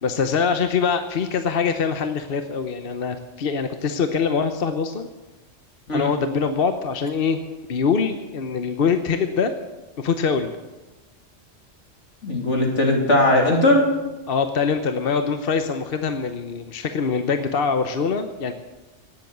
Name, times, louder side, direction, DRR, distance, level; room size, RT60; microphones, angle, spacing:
voice 1, 0.0-5.1 5.9-7.4 7.7-9.5 10.0-10.5 14.3-18.5, left 5 dB, 55° left, 7 dB, 1.0 m, -23 dB
voice 2, 12.2-13.9, left 1 dB, 75° left, 1 dB, 3.0 m, -18 dB
18.0 x 7.9 x 8.0 m, 1.1 s
omnidirectional pair, 1.2 m